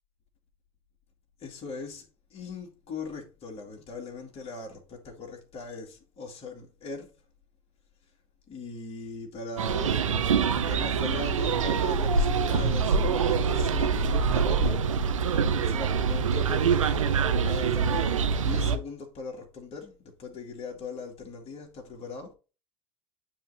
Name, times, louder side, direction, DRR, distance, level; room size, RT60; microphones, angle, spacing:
voice 1, 1.4-2.1 2.3-7.1 8.5-10.1 10.6-14.9 15.6-17.1 17.4-22.3, left 3 dB, 40° left, 2.0 m, -39 dB
sound 1, 9.6-18.8, right 5 dB, 85° right, 0.7 m, -25 dB
9.1 x 3.2 x 4.1 m
figure-of-eight pair, 70°, 16 cm